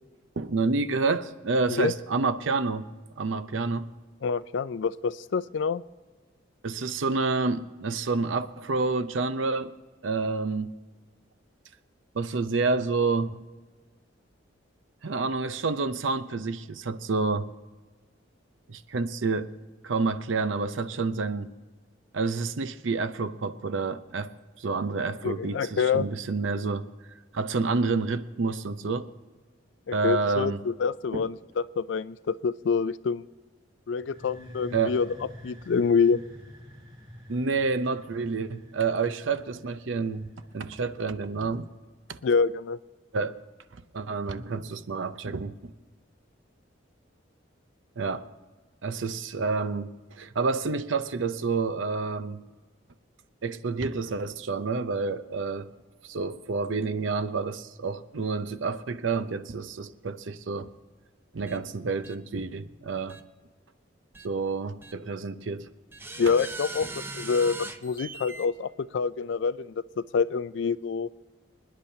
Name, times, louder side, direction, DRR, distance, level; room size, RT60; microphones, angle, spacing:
voice 1, 0.4-2.9 3.2-3.9 6.6-9.7 10.0-10.7 12.1-13.4 15.0-17.5 18.7-19.5 19.8-21.5 22.1-24.3 24.6-26.9 27.3-29.1 29.9-30.6 31.1-31.2 34.7-34.9 37.3-41.7 42.1-42.2 43.1-43.4 43.9-45.7 48.0-48.2 48.8-52.4 53.4-55.7 56.0-60.7 61.3-63.2 64.2-65.7 66.3-66.4, right 4 dB, 80° right, 0.6 m, -29 dB
voice 2, 4.2-5.8 25.2-26.1 29.9-33.3 33.9-35.1 35.4-36.2 42.2-42.8 66.2-69.7 70.1-71.1, left 5 dB, 70° left, 0.4 m, -26 dB
sound 1, 34.0-41.6, equal, 30° right, 4.1 m, -49 dB
sound 2, 61.5-61.6 62.0-62.2 63.1-63.2 64.1-64.3 64.8-64.9 65.9-68.5, right 3 dB, 10° right, 0.5 m, -39 dB
26.5 x 10.0 x 2.8 m
head